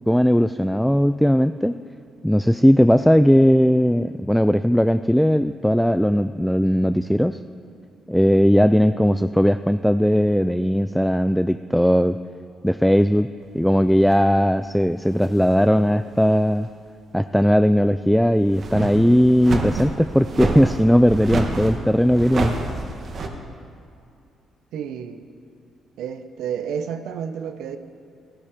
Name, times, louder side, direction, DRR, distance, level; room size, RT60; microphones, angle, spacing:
voice 1, 0.1-1.7 2.2-7.4 8.1-12.2 12.6-16.7 17.1-22.5, equal, ahead, 10 dB, 0.3 m, -18 dB
sound 1, 14.1-14.3 15.1-15.7 16.2-16.3 18.4-23.3, right 3 dB, 50° right, 1.5 m, -28 dB
voice 2, 24.7-25.2 26.0-27.8, right 8 dB, 80° right, 9 dB, 0.8 m, -30 dB
16.5 x 11.5 x 5.1 m, 2.5 s
cardioid pair, 90°, 0 cm